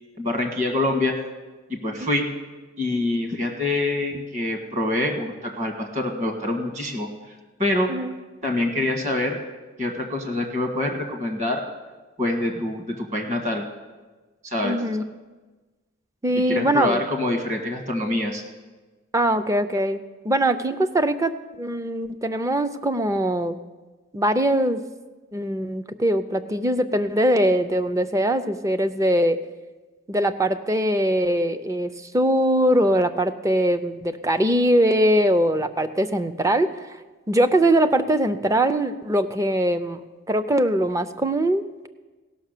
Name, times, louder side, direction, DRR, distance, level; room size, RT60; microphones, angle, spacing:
voice 1, 0.2-1.1 1.7-2.3 2.8-7.9 8.4-9.4 9.8-11.7 12.2-13.7 14.4-14.8 16.3-18.4, left 1 dB, 35° right, 3 dB, 1.6 m, -25 dB
voice 2, 14.6-15.0 16.2-17.0 19.1-20.0 20.2-21.3 21.6-23.6 24.1-24.8 25.3-29.4 30.1-37.0 37.3-40.0 40.3-41.9, right 1 dB, 15° right, 10 dB, 0.4 m, -22 dB
16.5 x 6.1 x 6.6 m, 1.2 s
head